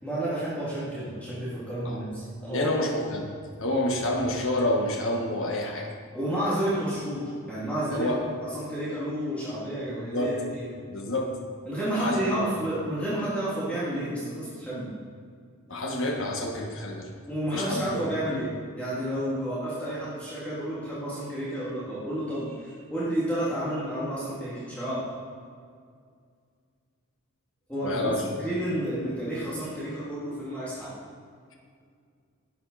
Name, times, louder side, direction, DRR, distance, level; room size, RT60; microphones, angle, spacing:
voice 1, 0.0-2.7 6.1-8.1 8.4-10.7 11.7-14.9 17.3-25.1 27.7-28.1 28.4-30.9, right 1 dB, 5° left, -10 dB, 2.7 m, -31 dB
voice 2, 2.5-3.3 3.6-5.9 7.9-8.2 10.1-10.4 10.9-11.4 11.9-12.5 15.7-17.1 17.5-18.1 27.8-28.4, left 1 dB, 65° left, 1 dB, 1.4 m, -28 dB
12.0 x 8.8 x 4.1 m, 2.2 s
head